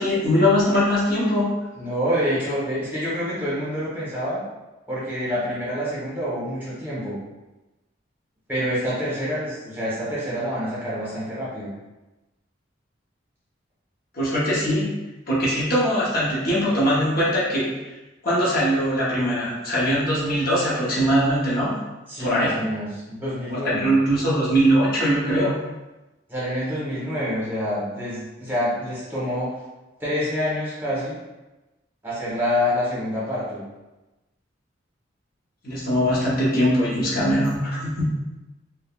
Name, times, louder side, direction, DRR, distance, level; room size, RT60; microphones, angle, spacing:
voice 1, 0.0-1.5 14.1-14.9 15.3-17.7 18.2-21.8 22.2-22.6 23.5-25.6 35.6-38.2, equal, 50° left, -7 dB, 0.8 m, -21 dB
voice 2, 1.8-4.4 4.9-7.2 8.5-11.7 22.1-23.9 26.3-29.6 30.0-31.1 32.0-33.6, equal, 10° right, -9 dB, 1.0 m, -27 dB
3.4 x 2.1 x 2.3 m, 1.1 s
head